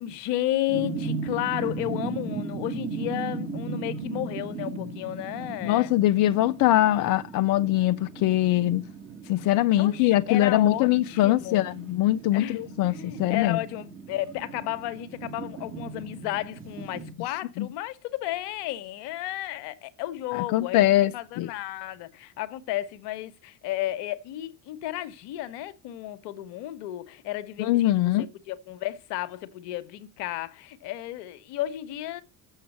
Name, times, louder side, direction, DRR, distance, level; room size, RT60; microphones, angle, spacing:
voice 1, 0.0-5.9 9.8-11.6 12.3-32.2, left 14 dB, 60° left, 1.1 m, -33 dB
sound 1, 0.7-17.1, right 4 dB, 25° right, 2.4 m, -37 dB
voice 2, 5.6-8.8 9.3-13.6 17.6-17.7 20.3-21.5 27.6-28.3, left 14 dB, 45° left, 0.5 m, -22 dB
7.2 x 5.6 x 7.2 m
hypercardioid pair, 70°, 47 cm